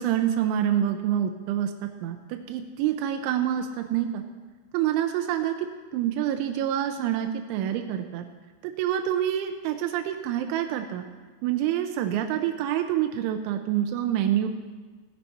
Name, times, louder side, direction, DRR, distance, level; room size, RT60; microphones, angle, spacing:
voice 1, 0.0-4.2 4.7-8.3 8.6-11.1 11.4-14.5, right 10 dB, 85° right, 5 dB, 3.1 m, -27 dB
16.5 x 9.8 x 4.2 m, 1.4 s
omnidirectional pair, 5.4 m